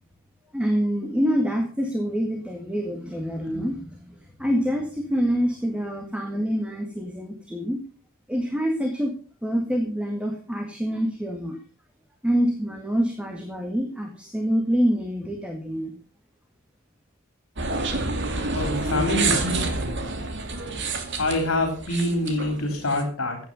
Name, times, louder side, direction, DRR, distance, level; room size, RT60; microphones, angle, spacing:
voice 1, 0.5-4.1 4.4-7.8 8.3-9.1 9.4-11.6 12.2-15.9, equal, 5° right, 3 dB, 1.9 m, -26 dB
sound 1, 17.6-23.0, right 2 dB, 55° right, 2.5 m, -28 dB
voice 2, 18.5-19.5 21.2-23.4, left 1 dB, 75° left, 4 dB, 3.7 m, -26 dB
15.5 x 9.2 x 5.5 m, 0.37 s
head